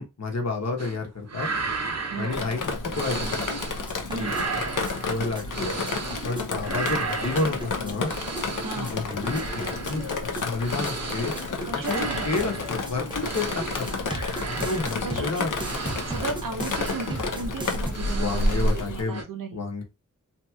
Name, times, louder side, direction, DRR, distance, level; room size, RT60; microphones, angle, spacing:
voice 1, 0.0-1.5 2.1-2.6 2.9-3.3 4.1-4.3 5.1-8.1 8.8-11.3 11.7-14.1 14.5-15.8 18.2-19.2 19.5-19.8, left 3 dB, 55° left, 1.0 m, -30 dB
sound 1, 0.8-1.0 1.3-3.9 4.1-6.4 6.6-18.8 19.1-19.2, right 4 dB, 55° right, 0.7 m, -34 dB
voice 2, 2.1-2.5 4.1-4.5 8.6-9.0 11.6-12.6 15.0-15.5 15.8-19.6, right 4 dB, 85° right, 0.7 m, -35 dB
Drip, 2.3-19.0, left 3 dB, 75° left, 0.6 m, -30 dB
sound 2, 3.9-17.9, right 2 dB, 15° right, 0.5 m, -39 dB
2.9 x 2.7 x 2.3 m
wide cardioid pair, 45°, 32 cm